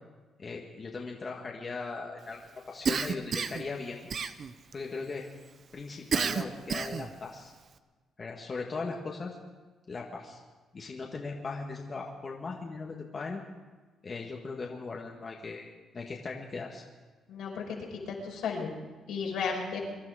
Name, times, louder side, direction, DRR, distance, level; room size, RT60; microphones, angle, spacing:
voice 1, 0.4-2.4 2.7-4.1 4.7-5.3 5.7-7.5 8.2-9.4 9.9-10.4 10.7-13.4 14.0-15.7 15.9-16.8, left 4 dB, 40° left, 0 dB, 1.8 m, -38 dB
Cough, 2.9-3.7 4.1-4.7 6.1-7.1, right 6 dB, 50° right, 0.8 m, -30 dB
voice 2, 17.3-17.8 18.1-18.7 19.1-19.8, left 5 dB, 80° left, -1 dB, 5.5 m, -33 dB
24.0 x 12.0 x 5.0 m, 1.3 s
cardioid pair, 90°, 0 cm